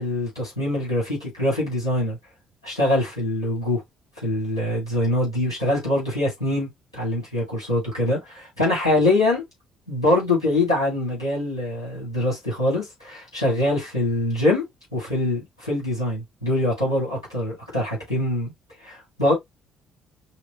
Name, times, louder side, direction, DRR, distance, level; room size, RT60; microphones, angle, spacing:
voice 1, 0.0-2.2 2.6-3.8 4.2-9.4 9.9-14.6 14.9-18.5 18.8-19.3, left 1 dB, 85° left, 2.4 m, -24 dB
5.7 x 2.4 x 3.0 m
figure-of-eight pair, 45°, 2 cm